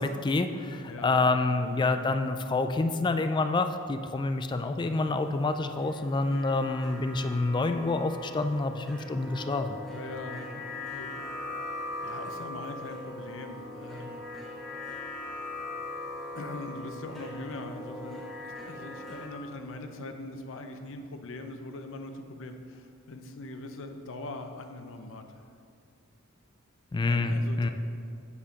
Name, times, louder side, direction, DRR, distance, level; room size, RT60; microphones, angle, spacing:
voice 1, 0.0-9.8 26.9-27.7, left 3 dB, 20° left, 8 dB, 0.3 m, -27 dB
voice 2, 0.8-1.9 9.9-11.3 11.8-14.3 16.3-25.4 27.0-27.7, left 2 dB, 60° left, 6 dB, 0.7 m, -42 dB
sound 1, 4.8-19.3, left 2 dB, ahead, 1.5 m, -40 dB
8.4 x 4.9 x 5.8 m, 2.4 s
head